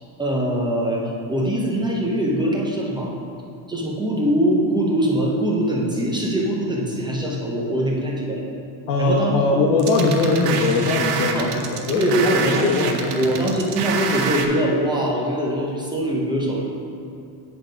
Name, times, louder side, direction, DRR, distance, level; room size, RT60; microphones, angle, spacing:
voice 1, 0.0-3.1 3.7-8.4 9.0-9.4 11.3-11.5 11.9-12.7 13.1-16.6, right 1 dB, 10° right, -3 dB, 0.5 m, -22 dB
voice 2, 8.9-13.5, left 3 dB, 70° left, -4 dB, 1.1 m, -21 dB
sound 1, 9.8-14.5, right 6 dB, 85° right, 0.9 m, -27 dB
8.5 x 3.9 x 5.0 m, 2.6 s
cardioid pair, 155°, 49 cm